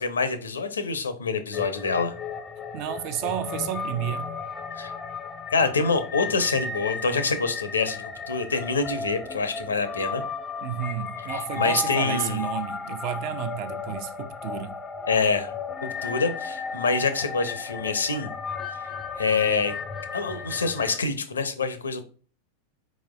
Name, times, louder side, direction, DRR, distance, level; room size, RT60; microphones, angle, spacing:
voice 1, 0.0-2.2 4.7-4.9 5.5-10.2 11.2-12.4 15.1-15.5 16.0-18.3 18.7-18.8 19.2-19.7 20.1-22.0, left 4 dB, 70° left, 0.6 m, -26 dB
sound 1, 1.5-21.0, left 5 dB, 15° left, 0.4 m, -34 dB
voice 2, 2.7-4.4 10.6-14.7, right 10 dB, 45° right, 0.4 m, -31 dB
4.5 x 4.2 x 2.2 m
figure-of-eight pair, 90°, 0 cm